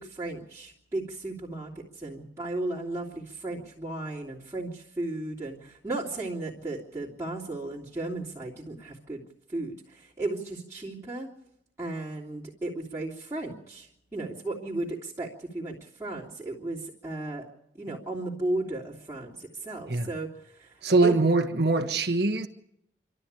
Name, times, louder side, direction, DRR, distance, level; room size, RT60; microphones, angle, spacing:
voice 1, 0.0-9.2 9.5-11.3 11.8-17.5 17.7-21.1, right 2 dB, 15° right, 3.1 m, -35 dB
voice 2, 20.8-22.5, right 3 dB, 60° right, 1.4 m, -23 dB
27.5 x 12.5 x 8.9 m
head